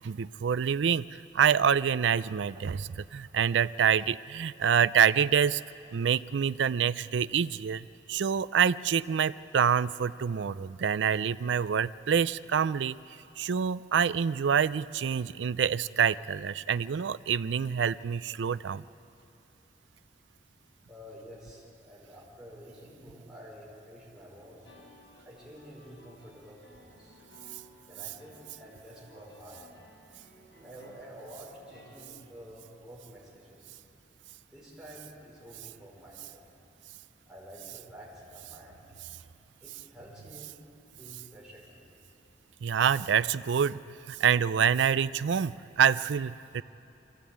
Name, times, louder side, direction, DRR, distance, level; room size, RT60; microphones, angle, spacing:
voice 1, 0.0-5.6 5.9-13.0 13.4-18.8 42.6-46.6, right 7 dB, 80° right, 17 dB, 0.4 m, -26 dB
voice 2, 20.9-24.6 25.2-27.2 27.9-29.7 30.6-33.7 34.5-36.4 37.3-39.2 39.6-40.5 41.0-41.8, equal, 5° right, -6 dB, 5.2 m, -49 dB
sound 1, 24.4-32.0, equal, 75° left, 5.4 m, -57 dB
23.5 x 16.0 x 8.7 m, 2.8 s
head